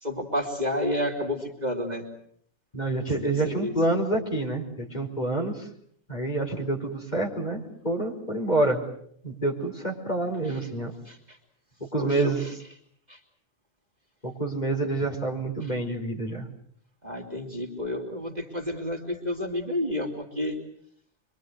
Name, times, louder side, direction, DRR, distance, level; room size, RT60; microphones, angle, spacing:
voice 1, 0.0-2.0 3.1-3.7 10.5-10.6 11.1-11.4 12.0-12.4 13.1-13.2 17.0-20.6, left 1 dB, 30° right, 3 dB, 3.3 m, -30 dB
voice 2, 2.7-5.7 6.1-8.8 9.2-10.9 11.9-12.4 14.2-16.5, right 2 dB, 30° left, 1 dB, 5.0 m, -27 dB
26.0 x 24.5 x 8.0 m, 0.66 s
omnidirectional pair, 1.4 m